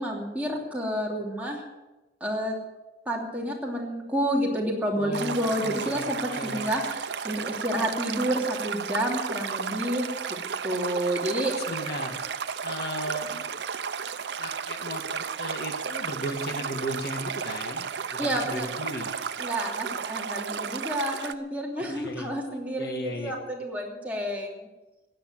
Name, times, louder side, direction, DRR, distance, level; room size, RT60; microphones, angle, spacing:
voice 1, 0.0-1.6 2.2-2.5 3.0-10.4 10.6-11.5 18.2-18.8 19.4-24.7, equal, 10° right, -2 dB, 3.0 m, -29 dB
voice 2, 4.9-6.7 11.5-12.2 12.6-13.5 14.4-19.2 21.8-22.3 22.8-23.3, equal, 60° left, 4 dB, 1.9 m, -36 dB
Stream, 5.1-21.3, right 6 dB, 80° right, 0.7 m, -33 dB
16.5 x 9.9 x 8.0 m, 1.1 s
head